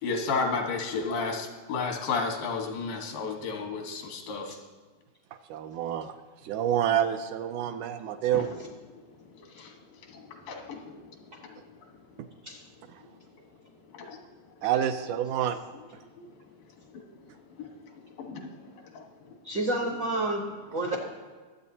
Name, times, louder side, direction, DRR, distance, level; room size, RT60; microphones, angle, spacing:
voice 1, 0.0-4.5 8.3-8.6 9.4-9.7 10.1-10.9 13.9-14.2 16.2-16.3 17.6-17.7 18.2-18.5 18.9-19.0, left 4 dB, 90° left, 2 dB, 3.1 m, -32 dB
voice 2, 5.5-6.1 6.4-8.5 14.6-15.6, right 10 dB, 80° right, 7 dB, 1.9 m, -27 dB
voice 3, 19.4-20.4 20.7-21.0, right 2 dB, 60° right, -1 dB, 1.1 m, -29 dB
23.0 x 8.5 x 2.8 m, 1.4 s
omnidirectional pair, 3.8 m